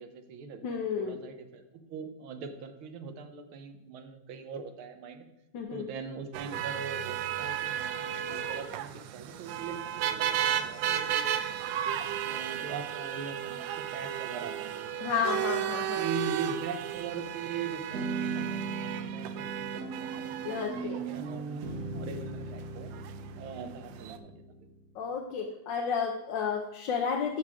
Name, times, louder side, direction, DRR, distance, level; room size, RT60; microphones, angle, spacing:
voice 1, 0.0-5.3 5.7-11.4 12.3-15.2 15.9-22.9 23.4-24.6, right 5 dB, 90° right, 7 dB, 1.8 m, -41 dB
voice 2, 0.6-1.2 5.5-5.9 15.0-16.1 20.4-21.0 24.9-27.4, left 6 dB, 65° left, 1 dB, 1.4 m, -32 dB
sound 1, 6.3-24.2, right 10 dB, 75° right, 1.2 m, -34 dB
sound 2, 16.9-17.5 17.9-24.9, right 4 dB, 55° right, 1.6 m, -38 dB
12.0 x 6.5 x 3.5 m, 0.95 s
omnidirectional pair, 2.2 m